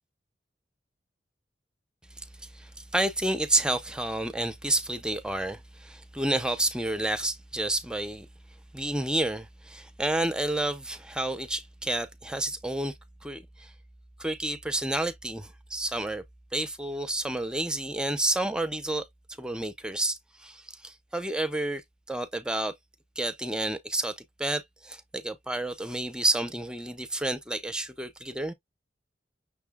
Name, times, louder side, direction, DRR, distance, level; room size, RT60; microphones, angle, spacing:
voice 1, 2.5-8.3 8.7-12.9 13.2-13.7 14.2-16.2 16.5-19.0 19.4-21.8 22.1-22.7 23.2-28.5, right 1 dB, 5° right, 0.5 m, -30 dB
6.2 x 2.2 x 3.5 m
head